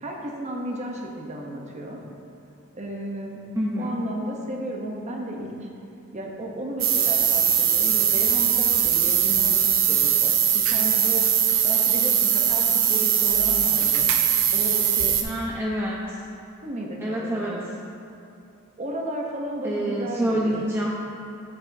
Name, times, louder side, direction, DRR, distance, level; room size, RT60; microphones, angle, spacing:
voice 1, 0.0-2.0 2.7-3.4 3.8-5.5 6.1-9.6 9.9-11.2 11.6-14.1 14.5-15.1 16.6-17.6 18.8-20.7, right 1 dB, 35° right, 0 dB, 0.8 m, -33 dB
voice 2, 3.5-4.0 15.2-16.2 17.0-17.6 19.6-20.9, right 1 dB, 10° right, -4 dB, 0.5 m, -27 dB
sound 1, 6.8-15.2, right 9 dB, 65° right, 0.6 m, -21 dB
7.9 x 6.9 x 2.7 m, 2.7 s
head